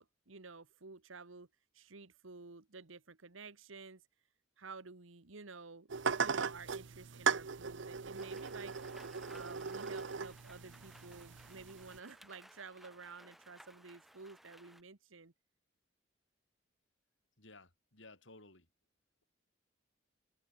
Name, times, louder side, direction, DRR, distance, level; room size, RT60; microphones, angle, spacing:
voice 1, 0.0-1.5 1.7-4.0 4.6-8.8 9.3-15.3, right 4 dB, 85° right, 1.4 m, -52 dB
sound 1, 5.9-12.0, right 5 dB, 70° right, 0.7 m, -38 dB
Rain, 8.2-14.8, equal, ahead, 2.9 m, -60 dB
voice 2, 17.4-18.7, left 2 dB, 70° left, 5.1 m, -57 dB
head